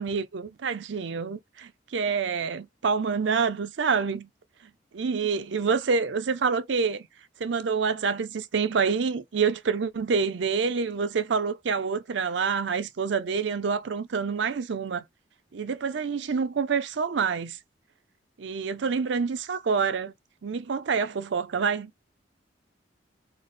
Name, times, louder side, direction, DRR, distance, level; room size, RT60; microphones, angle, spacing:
voice 1, 0.0-4.2 4.9-7.1 7.4-15.0 15.5-17.6 18.4-20.1 20.4-21.9, right 5 dB, 75° right, 0.5 m, -27 dB
4.0 x 2.1 x 3.3 m
head